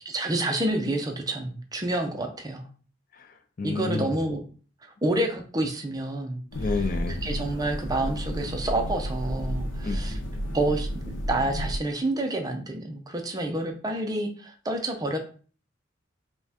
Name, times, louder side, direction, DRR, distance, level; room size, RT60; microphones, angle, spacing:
voice 1, 0.1-2.7 3.6-4.4 4.8-6.4 7.2-10.2 10.5-15.2, right 1 dB, 20° right, 4 dB, 0.5 m, -28 dB
voice 2, 3.1-4.2 6.5-7.2 9.8-10.0, left 3 dB, 45° left, 7 dB, 0.4 m, -30 dB
sound 1, 6.5-11.8, equal, 75° left, 0.7 m, -32 dB
5.1 x 2.2 x 2.8 m, 0.41 s
head